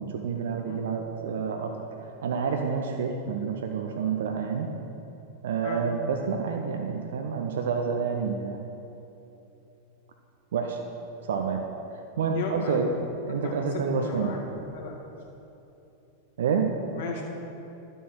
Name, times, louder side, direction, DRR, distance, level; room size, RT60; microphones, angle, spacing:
voice 1, 0.0-1.8 2.2-4.7 5.4-8.6 10.5-10.8 11.2-11.7 12.2-14.4 16.4-16.7, right 5 dB, 60° right, 3 dB, 0.8 m, -28 dB
voice 2, 12.3-12.8 13.3-14.4 14.7-14.9 16.9-17.2, left 4 dB, 55° left, -1 dB, 2.2 m, -35 dB
12.0 x 7.9 x 6.1 m, 2.9 s
figure-of-eight pair, 90°, 0 cm